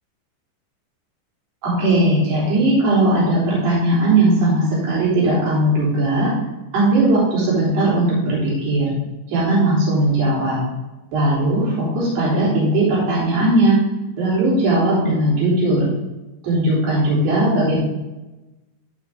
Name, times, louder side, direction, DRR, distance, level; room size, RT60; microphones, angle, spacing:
voice 1, 1.6-6.3 6.7-8.9 9.3-10.6 11.1-13.8 14.2-15.9 16.4-17.8, right 1 dB, 65° right, -7 dB, 5.3 m, -18 dB
13.5 x 5.1 x 3.6 m, 1.1 s
omnidirectional pair, 5.2 m